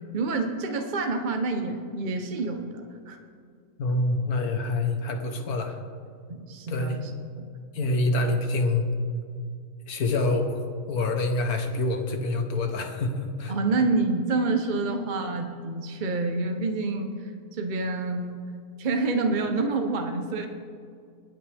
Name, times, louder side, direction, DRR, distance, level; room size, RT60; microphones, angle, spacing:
voice 1, 0.1-2.8 3.1-3.2 6.3-7.1 7.4-7.5 13.5-18.4 18.8-20.5, right 3 dB, 40° right, 4 dB, 0.9 m, -27 dB
voice 2, 3.8-5.8 6.7-7.0 7.7-8.9 9.9-10.6 10.9-13.5, left 2 dB, 75° left, 5 dB, 1.7 m, -26 dB
21.0 x 8.5 x 3.5 m, 2.3 s
omnidirectional pair, 1.6 m